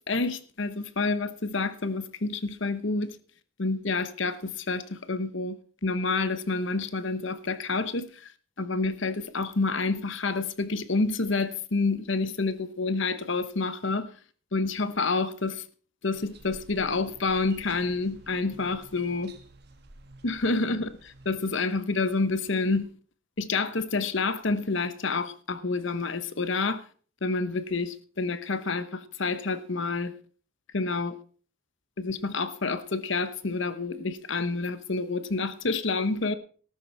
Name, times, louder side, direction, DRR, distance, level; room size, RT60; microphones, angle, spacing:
voice 1, 0.1-3.2 3.6-8.3 8.6-14.1 14.5-15.6 16.0-19.3 20.2-22.9 23.4-26.8 27.2-30.1 30.7-31.2 32.0-36.3, left 3 dB, 60° left, 1.1 m, -28 dB
sound 1, 16.1-21.3, right 2 dB, 50° right, 1.6 m, -51 dB
13.0 x 12.5 x 4.4 m
head